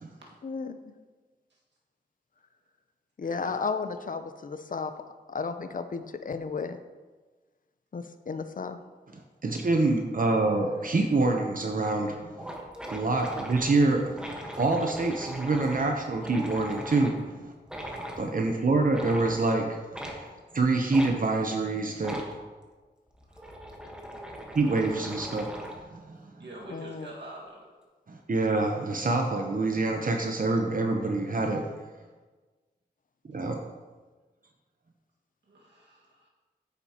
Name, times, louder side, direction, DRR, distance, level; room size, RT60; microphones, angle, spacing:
voice 1, 0.4-0.8 3.2-4.9 5.3-6.8 7.9-8.8 26.7-27.1, left 5 dB, 50° left, 10 dB, 0.6 m, -33 dB
voice 2, 3.2-3.7 12.5-12.7 22.0-22.1 23.3-23.5 26.4-27.7 35.5-36.3, right 1 dB, 80° right, -4 dB, 1.8 m, -46 dB
voice 3, 9.4-12.5 12.9-17.5 18.2-22.2 24.5-26.2 28.1-31.7 33.3-33.6, right 3 dB, 50° right, 2 dB, 0.8 m, -26 dB
sound 1, 11.7-11.8 12.1-12.2 12.4-17.2 17.7-18.2 18.9-19.4 19.9-20.2 20.9-21.1 22.0-22.3 23.1-25.9, equal, 5° right, 1.2 m, -40 dB
9.4 x 6.9 x 2.9 m, 1.3 s
wide cardioid pair, 75°, 18 cm